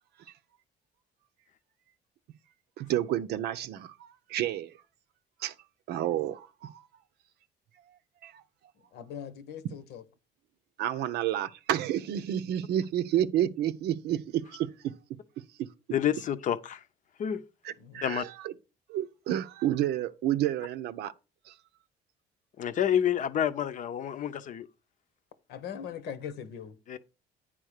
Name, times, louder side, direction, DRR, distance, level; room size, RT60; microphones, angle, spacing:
voice 1, 2.8-4.7 5.4-5.5 5.9-6.8 8.2-8.4 10.8-15.0 15.6-15.7 17.6-18.5 18.9-21.1 21.5-21.6, right 11 dB, 75° right, 0.7 m, -30 dB
voice 2, 8.9-10.0 17.8-18.0 25.5-26.8, left 8 dB, 80° left, 1.1 m, -40 dB
voice 3, 15.9-16.8 17.2-17.4 18.0-18.3 22.6-24.7 26.9-27.0, left 9 dB, 50° left, 0.7 m, -28 dB
9.2 x 3.7 x 6.5 m
cardioid pair, 110°, 17 cm